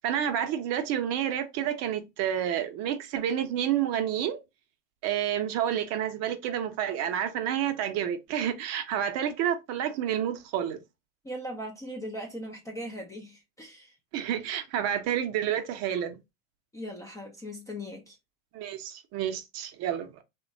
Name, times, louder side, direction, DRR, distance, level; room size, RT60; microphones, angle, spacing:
voice 1, 0.0-4.4 5.0-10.8 14.1-16.2 18.5-20.1, right 10 dB, 40° right, 0.6 m, -29 dB
voice 2, 11.2-14.0 16.7-18.2, equal, 10° left, 0.4 m, -39 dB
2.8 x 2.1 x 2.6 m
hypercardioid pair, 105°, 38 cm